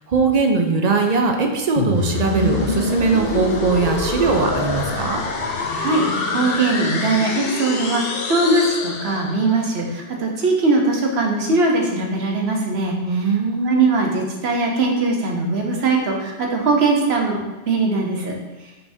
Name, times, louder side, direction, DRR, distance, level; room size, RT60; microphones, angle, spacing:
voice 1, 0.1-5.2 13.0-13.9, right 4 dB, 50° right, 3 dB, 0.5 m, -20 dB
sound 1, 1.8-9.6, left 3 dB, 65° left, 0.8 m, -25 dB
voice 2, 5.8-13.0 13.6-17.4 17.7-18.4, right 3 dB, 75° right, 0 dB, 1.1 m, -20 dB
5.7 x 3.4 x 2.7 m, 1.1 s
omnidirectional pair, 1.1 m